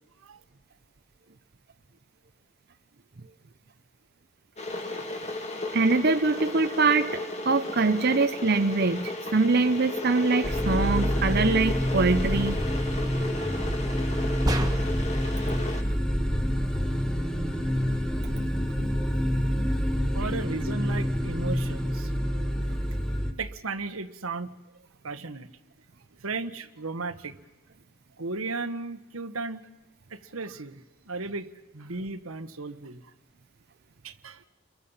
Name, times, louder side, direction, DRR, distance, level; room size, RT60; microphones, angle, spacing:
Water / Boiling, 4.6-15.8, left 2 dB, 30° left, 2.4 m, -34 dB
voice 1, 5.7-12.6, right 3 dB, 50° right, 8 dB, 0.7 m, -24 dB
sound 1, 10.4-23.3, equal, 5° left, 1.4 m, -27 dB
sound 2, 14.5-15.2, right 1 dB, 15° right, 1.6 m, -30 dB
voice 2, 20.1-22.1 23.4-24.5 25.0-25.5 26.2-27.4 28.2-29.6 30.1-33.1 34.0-34.5, right 3 dB, 85° right, 8 dB, 1.4 m, -35 dB
30.0 x 23.0 x 5.7 m, 1.1 s
head